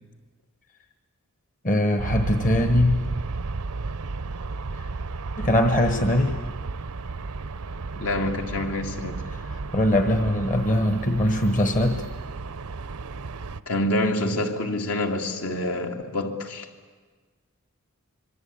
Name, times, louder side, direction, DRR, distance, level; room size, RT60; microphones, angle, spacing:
voice 1, 1.6-3.0 4.8-4.9 5.4-6.3 9.5-12.0, left 1 dB, 35° left, 7 dB, 1.3 m, -21 dB
Aircraft, 2.0-13.6, right 3 dB, 80° right, 0.7 m, -33 dB
voice 2, 8.0-9.2 13.7-16.7, left 1 dB, 70° left, 3 dB, 2.6 m, -27 dB
26.0 x 23.5 x 8.7 m, 1.4 s
head